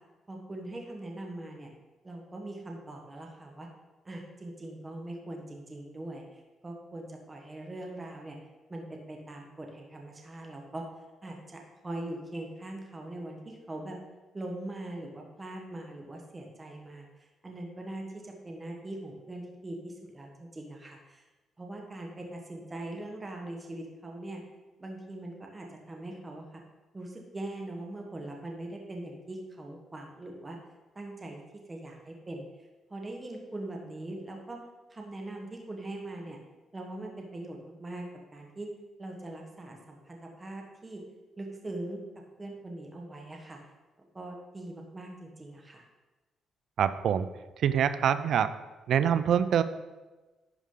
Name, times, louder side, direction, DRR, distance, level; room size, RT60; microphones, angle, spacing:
voice 1, 0.3-1.7 2.0-3.7 4.0-8.4 8.7-10.8 11.2-14.0 14.3-21.2 21.6-24.4 24.8-26.6 26.9-30.6 30.9-31.4 31.7-32.4 32.9-34.6 34.9-36.4 36.7-38.7 39.0-41.0 41.4-42.0 42.4-43.6 44.1-45.8, right 1 dB, 20° right, 1 dB, 1.3 m, -41 dB
voice 2, 46.8-47.3 47.6-48.5 48.9-49.6, right 8 dB, 70° right, 13 dB, 0.4 m, -25 dB
11.0 x 4.8 x 3.8 m, 1.2 s
cardioid pair, 90°, 0 cm